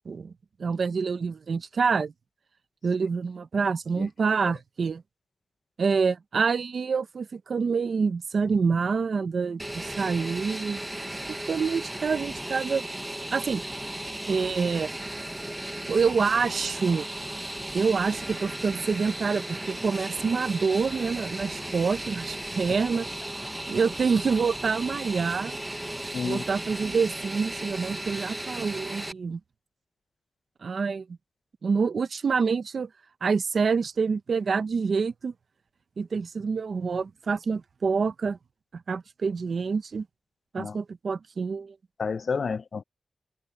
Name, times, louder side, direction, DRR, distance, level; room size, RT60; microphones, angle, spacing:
voice 1, 0.6-2.1 2.8-5.0 5.8-10.8 11.5-12.8 13.3-13.6 14.3-14.9 15.9-17.1 17.7-23.1 23.7-25.6 26.2-29.4 30.6-31.0 31.6-32.9 33.2-35.3 36.0-38.4 38.9-40.0 40.5-41.7, right 5 dB, 65° right, 0.8 m, -27 dB
Fixed-wing aircraft airplane, 9.6-29.1, right 1 dB, 10° right, 0.7 m, -36 dB
voice 2, 26.1-26.4 40.6-40.8 42.0-42.8, left 5 dB, 55° left, 0.5 m, -30 dB
wide cardioid pair, 170°, 0 cm